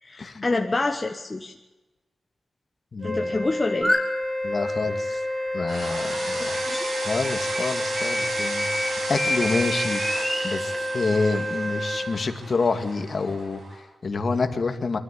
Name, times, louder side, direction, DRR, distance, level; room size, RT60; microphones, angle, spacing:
voice 1, 0.0-1.5 3.0-3.9 6.4-6.9, left 3 dB, 25° left, 3 dB, 1.2 m, -27 dB
voice 2, 2.9-3.3 4.4-5.2 5.5-6.6 7.0-10.0 10.4-15.0, left 4 dB, 45° left, 6 dB, 2.1 m, -28 dB
Wind instrument woodwind instrument, 3.0-12.2, left 1 dB, 45° right, 6.5 m, -30 dB
sound 1, 3.8-4.0 4.7-7.7 8.0-10.8, left 1 dB, 5° right, 4.5 m, -29 dB
sound 2, 5.7-13.8, right 2 dB, 60° right, 6.1 m, -34 dB
24.0 x 13.5 x 8.4 m, 1.1 s
wide cardioid pair, 150°, 0 cm